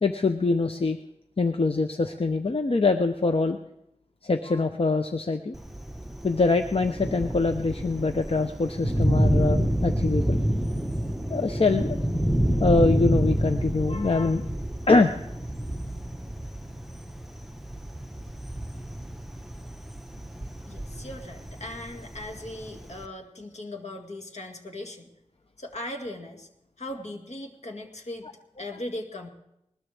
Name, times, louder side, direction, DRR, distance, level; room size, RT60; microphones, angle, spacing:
voice 1, 0.0-1.0 1.4-3.6 4.2-5.5 6.2-10.4 11.3-12.0 12.6-14.5 14.9-15.1, left 3 dB, 55° left, 7 dB, 0.7 m, -24 dB
Thunder, 5.5-23.1, equal, ahead, 1.2 m, -28 dB
voice 2, 20.7-25.1 25.6-26.5 26.8-28.3 28.6-29.3, left 1 dB, 75° left, 3 dB, 2.0 m, -38 dB
20.5 x 20.5 x 3.4 m, 0.82 s
wide cardioid pair, 60°, 12 cm